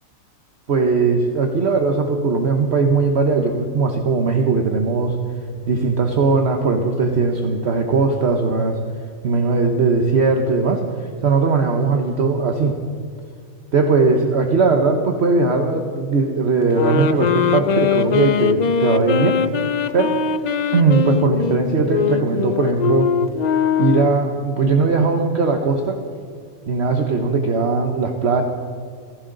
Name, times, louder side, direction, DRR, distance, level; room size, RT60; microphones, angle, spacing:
voice 1, 0.7-5.2 5.7-8.8 9.2-12.7 13.7-19.4 19.9-20.2 20.7-23.1 23.8-26.0 26.7-28.4, right 4 dB, 55° right, 4 dB, 1.2 m, -19 dB
sound 1, 16.7-24.3, left 7 dB, 50° left, 0.5 m, -21 dB
29.5 x 11.5 x 3.9 m, 2.2 s
omnidirectional pair, 1.4 m